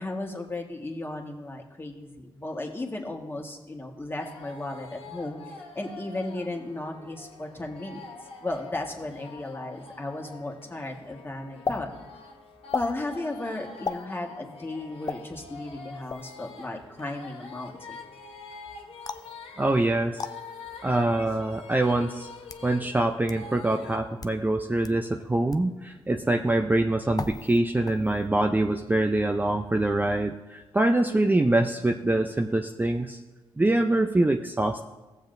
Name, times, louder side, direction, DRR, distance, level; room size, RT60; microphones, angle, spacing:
voice 1, 0.0-8.0 8.4-11.9 12.7-18.0, left 2 dB, 20° left, 1 dB, 1.6 m, -35 dB
sound 1, 4.2-24.0, left 4 dB, 65° left, 1.3 m, -45 dB
sound 2, 11.6-11.8 12.7-12.9 13.8-14.0 15.0-15.2 16.1-16.3 19.0-19.3 20.2-20.3 21.3-21.4 22.2-22.7 23.3-23.4 24.1-24.4 24.8-24.9 25.5-25.7 27.1-27.6 27.9-28.3, left 4 dB, 35° left, 0.5 m, -34 dB
voice 2, 19.6-20.3 20.8-22.3 22.6-33.2 33.6-34.8, right 2 dB, 15° right, 4 dB, 0.6 m, -24 dB
15.5 x 7.1 x 2.6 m, 1.2 s
supercardioid pair, 55°, 10 cm